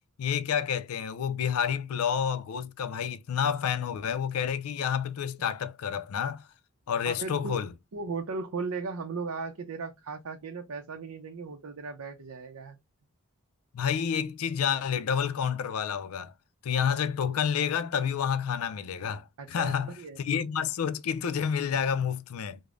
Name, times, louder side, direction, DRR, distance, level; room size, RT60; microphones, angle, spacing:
voice 1, 0.2-6.4 6.9-7.7 13.7-16.3 16.6-19.9 20.2-22.6, left 7 dB, 80° left, 0.4 m, -29 dB
voice 2, 7.0-7.6 7.9-12.8 19.4-20.2, right 4 dB, 90° right, 0.6 m, -37 dB
4.9 x 2.1 x 2.4 m
head